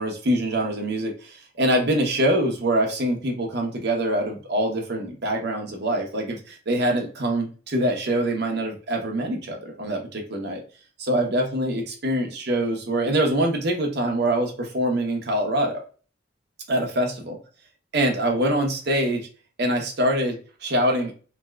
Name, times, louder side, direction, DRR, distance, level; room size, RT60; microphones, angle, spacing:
voice 1, 0.0-10.6 11.0-15.8 16.7-17.4 17.9-19.3 19.6-21.1, right 1 dB, 60° right, 2 dB, 0.8 m, -24 dB
3.3 x 2.7 x 2.3 m, 0.37 s
head